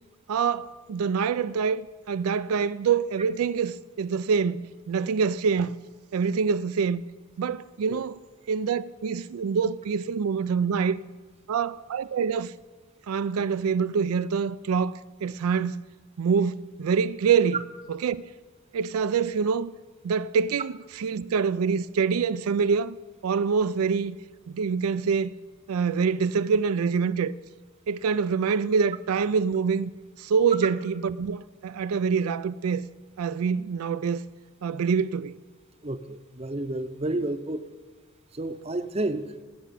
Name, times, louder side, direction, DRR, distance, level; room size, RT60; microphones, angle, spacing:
voice 1, 0.3-5.8 6.1-7.0 7.4-8.2 8.5-11.0 11.5-12.5 13.1-15.8 16.2-17.6 17.9-18.3 18.7-19.7 20.0-23.0 23.2-24.2 24.5-25.3 25.7-27.3 27.9-29.9 30.2-32.9 33.2-34.2 34.6-35.4, right 6 dB, 85° right, 0.4 m, -25 dB
voice 2, 35.8-37.6 38.3-39.3, right 1 dB, 30° right, 0.6 m, -31 dB
18.0 x 6.0 x 9.2 m
head